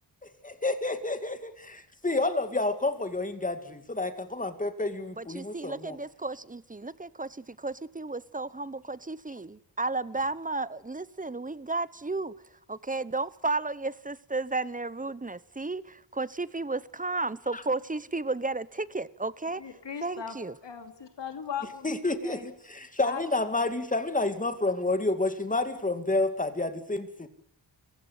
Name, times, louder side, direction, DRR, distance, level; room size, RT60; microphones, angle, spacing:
voice 1, 0.2-1.7 2.0-6.0 17.5-17.6 21.8-27.3, left 2 dB, 20° left, 2.4 m, -29 dB
voice 2, 5.2-12.3 12.7-19.6 20.0-20.5, right 3 dB, 20° right, 0.9 m, -33 dB
voice 3, 19.6-20.4 20.6-22.4 23.0-23.2, left 7 dB, 70° left, 3.0 m, -38 dB
29.0 x 16.0 x 8.3 m
wide cardioid pair, 105°, 44 cm